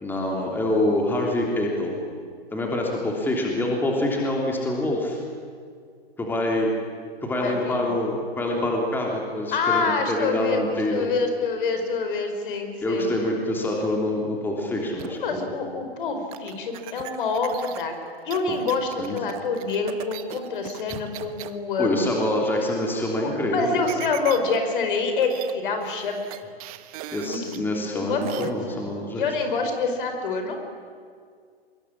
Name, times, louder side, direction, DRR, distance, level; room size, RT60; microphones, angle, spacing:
voice 1, 0.0-2.0 2.5-5.2 6.2-6.7 7.2-11.1 12.8-15.5 18.5-18.6 19.0-19.2 21.8-23.8 27.1-29.2, left 1 dB, 5° left, -1 dB, 3.3 m, -26 dB
voice 2, 7.4-7.9 9.5-13.1 15.2-18.0 18.2-22.1 23.2-26.2 27.2-28.8 29.1-30.6, left 4 dB, 55° left, 6 dB, 5.1 m, -27 dB
sound 1, 15.0-15.3 16.3-21.5 23.9-24.6 24.9-25.0 25.2-25.5 25.8-27.6 28.2-28.5, right 14 dB, 35° right, 1.4 m, -38 dB
24.5 x 21.5 x 10.0 m, 2.1 s
hypercardioid pair, 130°, 31 cm